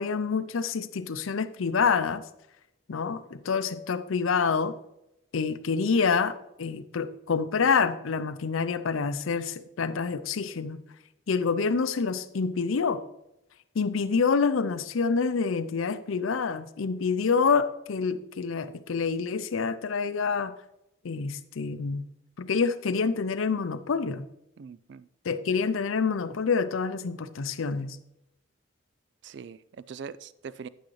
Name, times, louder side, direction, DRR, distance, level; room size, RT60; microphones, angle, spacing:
voice 1, 0.0-2.2 2.9-4.7 5.3-10.8 11.3-13.0 13.8-20.5 21.0-22.1 22.4-24.3 25.3-28.0, left 5 dB, 80° left, 12 dB, 0.5 m, -27 dB
voice 2, 24.6-25.1 29.2-30.7, right 6 dB, 55° right, 17 dB, 0.3 m, -42 dB
10.0 x 8.5 x 3.2 m, 0.86 s
head